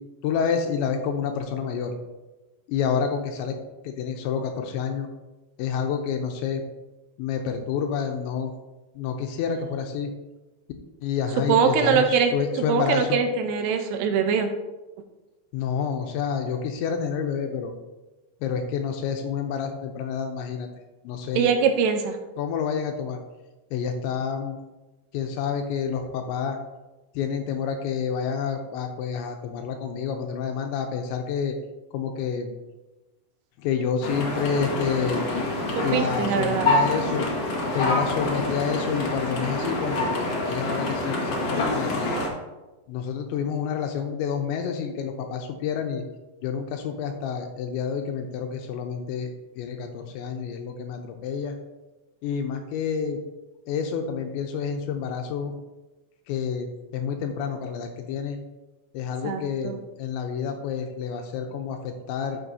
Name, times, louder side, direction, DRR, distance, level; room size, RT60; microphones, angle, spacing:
voice 1, 0.2-1.9 2.7-3.6 3.8-5.1 5.6-6.6 7.2-8.5 9.0-10.1 11.0-13.2 15.5-17.7 18.4-20.7 21.0-21.5 22.4-23.2 23.7-24.6 25.1-26.6 27.1-31.6 31.9-32.5 33.6-35.3 35.8-37.3 37.7-42.2 42.9-46.0 46.4-51.6 52.2-53.2 53.7-55.5 56.3-56.7 56.9-58.4 58.9-62.4, left 7 dB, 85° left, 4 dB, 3.0 m, -28 dB
voice 2, 11.5-12.3 12.7-14.5 21.3-22.2 35.8-36.7 59.2-59.8, right 6 dB, 80° right, 6 dB, 2.6 m, -22 dB
sound 1, 34.0-42.3, left 2 dB, 65° left, 1.6 m, -26 dB
12.0 x 7.2 x 2.7 m, 1.1 s
omnidirectional pair, 5.3 m